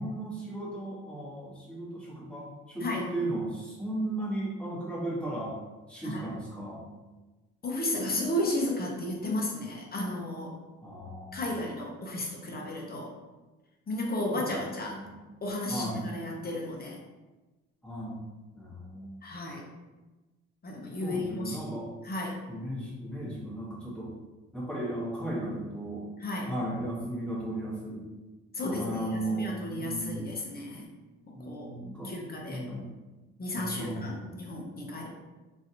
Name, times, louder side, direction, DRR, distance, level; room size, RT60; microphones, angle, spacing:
voice 1, 0.0-5.5 5.9-6.8 10.8-11.4 14.3-14.6 14.9-15.1 15.7-16.1 17.8-18.2 18.5-19.1 21.0-21.9 22.5-24.1 24.5-26.1 26.4-28.0 28.6-30.3 31.3-32.1 32.5-32.9 33.6-34.3, right 1 dB, 5° left, -7 dB, 1.2 m, -35 dB
voice 2, 2.8-3.1 6.0-6.3 7.6-10.6 11.3-13.1 13.9-15.0 15.4-17.0 19.2-19.6 20.6-21.7 22.0-22.4 26.2-26.5 28.5-30.9 31.2-31.7 32.0-32.6 33.4-35.1, left 1 dB, 30° left, -2 dB, 0.7 m, -33 dB
3.0 x 2.6 x 2.7 m, 1.2 s
cardioid pair, 90°, 30 cm